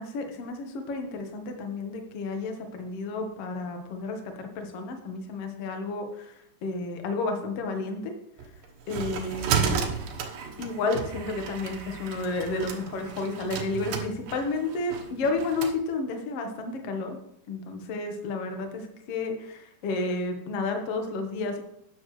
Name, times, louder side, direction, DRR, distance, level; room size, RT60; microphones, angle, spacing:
voice 1, 0.0-6.3 6.6-8.1 8.9-9.8 10.6-17.2 17.5-21.6, left 3 dB, 80° left, 4 dB, 1.3 m, -31 dB
sound 1, 8.4-15.8, right 6 dB, 65° right, 2.4 m, -33 dB
12.5 x 9.5 x 3.2 m, 0.75 s
omnidirectional pair, 4.8 m